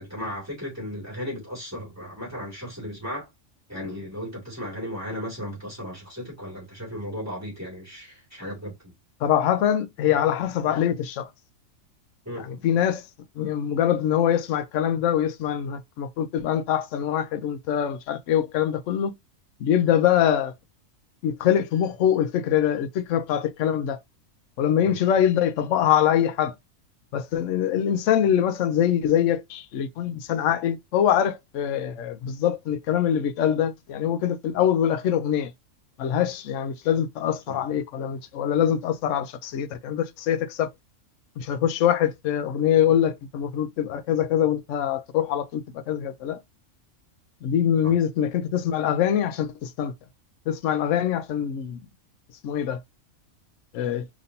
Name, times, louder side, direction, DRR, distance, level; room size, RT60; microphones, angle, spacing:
voice 1, 0.0-3.3 3.7-8.7 12.2-12.7 24.8-24.9 37.5-37.6 47.8-48.0, equal, 10° right, 2.7 m, -35 dB
voice 2, 9.2-11.3 12.4-13.0 13.4-19.1 19.6-20.5 21.2-24.0 24.6-26.5 27.1-35.5 36.0-40.7 41.4-46.4 47.4-49.9 50.5-51.8 52.4-52.8 53.7-54.1, left 9 dB, 70° left, 1.0 m, -24 dB
5.2 x 3.0 x 2.8 m
omnidirectional pair, 1.4 m